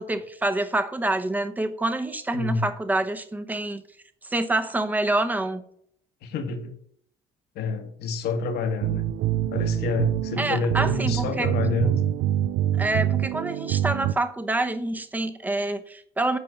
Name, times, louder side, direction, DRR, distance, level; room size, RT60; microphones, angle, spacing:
voice 1, 0.0-3.8 4.3-5.6 10.4-11.5 12.8-16.4, right 2 dB, 10° right, 9 dB, 0.8 m, -27 dB
voice 2, 2.3-2.6 6.2-6.7 7.5-9.1 9.5-12.0, left 3 dB, 75° left, 6 dB, 1.5 m, -28 dB
sound 1, 8.8-14.1, right 12 dB, 85° right, 0.4 m, -25 dB
8.9 x 4.2 x 6.6 m, 0.64 s
cardioid pair, 110°, 17 cm